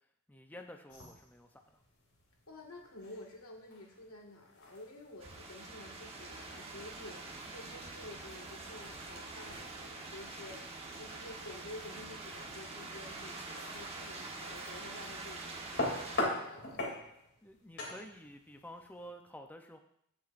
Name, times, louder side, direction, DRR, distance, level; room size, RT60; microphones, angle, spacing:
voice 1, 0.3-1.8 17.4-19.8, equal, 10° left, 4 dB, 0.6 m, -50 dB
sound 1, 0.9-19.1, left 1 dB, 60° left, 2.8 m, -44 dB
voice 2, 2.5-16.9, left 2 dB, 85° left, 0 dB, 1.9 m, -51 dB
sound 2, 5.2-16.2, right 3 dB, 30° right, 1.2 m, -45 dB
15.5 x 7.1 x 2.6 m, 0.71 s
head